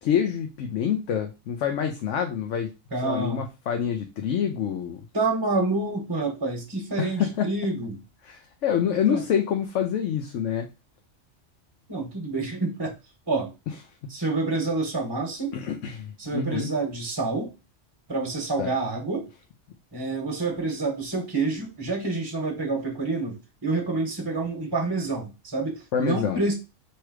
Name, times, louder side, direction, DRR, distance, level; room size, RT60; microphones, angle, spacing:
voice 1, 0.0-2.7 3.0-5.0 7.0-7.5 8.2-10.7 14.0-14.1 15.5-16.7 18.6-18.7 25.9-26.5, left 8 dB, 80° left, 4 dB, 1.0 m, -27 dB
voice 2, 2.9-3.4 5.1-8.0 8.9-9.2 11.9-12.9 13.3-13.5 14.1-15.6 16.2-17.5 18.1-19.3 19.9-26.5, right 3 dB, 20° right, 2 dB, 1.0 m, -28 dB
3.1 x 3.0 x 4.6 m, 0.27 s
omnidirectional pair, 1.2 m